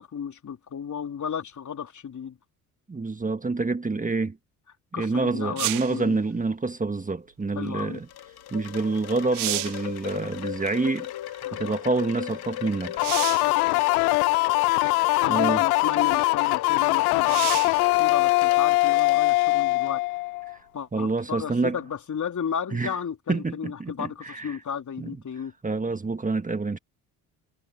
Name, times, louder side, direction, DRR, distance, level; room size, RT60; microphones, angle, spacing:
voice 1, 0.0-2.4 4.9-6.1 7.6-8.0 11.4-11.8 13.4-13.8 15.2-20.0 20.7-25.5, left 7 dB, 45° left, 3.8 m, -33 dB
voice 2, 2.9-4.4 5.0-8.1 8.5-11.1 11.5-13.0 15.3-15.6 20.5-20.6 20.9-21.8 22.7-22.9 23.3-24.6 25.0-25.1 25.6-26.8, right 3 dB, 20° right, 1.6 m, -27 dB
sound 1, 5.6-6.0 8.7-8.8 9.2-9.9 13.0-13.5 14.6-14.7 17.2-17.8 21.4-21.5, right 18 dB, 90° right, 1.1 m, -30 dB
Wind chime, 7.7-19.9, left 13 dB, 60° left, 2.5 m, -37 dB
sound 2, 13.0-20.5, left 22 dB, 85° left, 0.6 m, -22 dB
hypercardioid pair, 60°, 43 cm